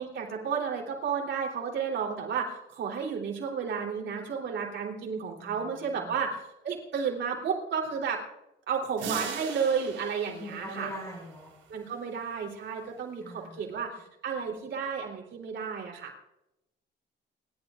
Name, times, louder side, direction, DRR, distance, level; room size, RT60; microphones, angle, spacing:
voice 1, 0.0-8.2 8.7-10.9 11.7-13.9 14.2-16.1, right 6 dB, 65° right, -1 dB, 3.6 m, -32 dB
sound 1, 9.0-11.5, right 6 dB, 85° right, 4.3 m, -39 dB
voice 2, 10.4-11.5 13.2-13.6, equal, 10° left, -6 dB, 6.5 m, -42 dB
29.5 x 11.5 x 2.5 m, 0.91 s
cardioid pair, 90°, 20 cm